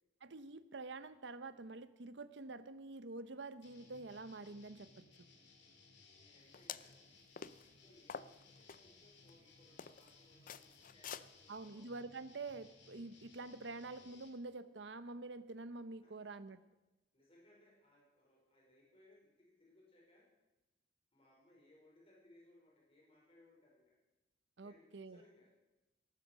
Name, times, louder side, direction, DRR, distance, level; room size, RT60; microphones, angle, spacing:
voice 1, 0.2-5.0 11.5-16.6 24.6-25.2, right 3 dB, 70° right, 13 dB, 0.8 m, -47 dB
sound 1, 3.6-14.3, left 3 dB, 65° left, 2.6 m, -63 dB
voice 2, 6.1-7.0 7.5-11.9 16.0-16.6 17.1-20.2 21.1-23.9 24.6-25.5, left 1 dB, 30° left, -4 dB, 5.2 m, -67 dB
sound 2, 6.5-6.9 7.4-7.7 8.1-8.8 9.3-9.4 9.8-10.1 10.5-11.2, left 7 dB, 50° left, 0.5 m, -47 dB
18.0 x 9.4 x 6.3 m, 1.0 s
head